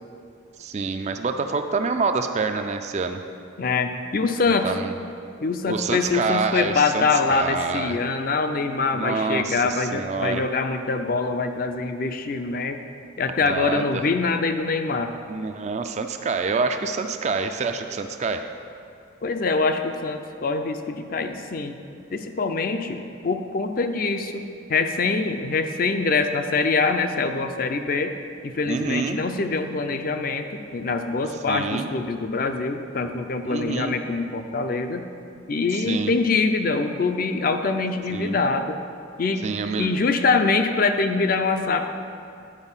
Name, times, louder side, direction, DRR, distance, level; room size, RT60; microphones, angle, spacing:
voice 1, 0.6-3.2 4.6-5.0 5.7-8.0 8.9-10.5 13.4-14.1 15.3-18.5 28.7-29.2 31.5-31.9 33.5-34.0 35.7-36.1 38.1-38.4 39.4-39.9, right 4 dB, 35° right, 7 dB, 0.3 m, -27 dB
voice 2, 3.6-4.7 5.4-12.8 13.2-15.1 19.2-21.8 22.1-28.1 28.4-35.1 35.5-38.8 39.2-39.4 39.8-42.0, left 4 dB, 45° left, 7 dB, 0.4 m, -24 dB
9.8 x 4.5 x 5.5 m, 2.5 s
head